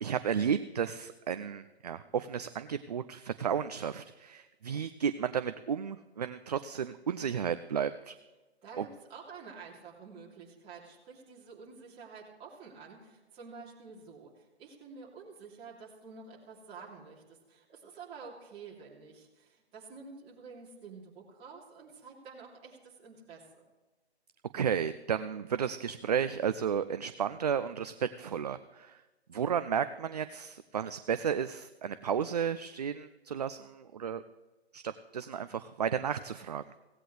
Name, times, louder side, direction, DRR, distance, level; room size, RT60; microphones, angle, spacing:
voice 1, 0.0-8.2 8.8-8.9 24.5-29.0 29.3-34.2 34.7-36.6, right 7 dB, 40° right, 12 dB, 0.4 m, -33 dB
voice 2, 8.6-23.6, right 5 dB, 20° right, -3 dB, 2.9 m, -49 dB
16.5 x 16.5 x 3.3 m, 1.1 s
figure-of-eight pair, 140°, 32 cm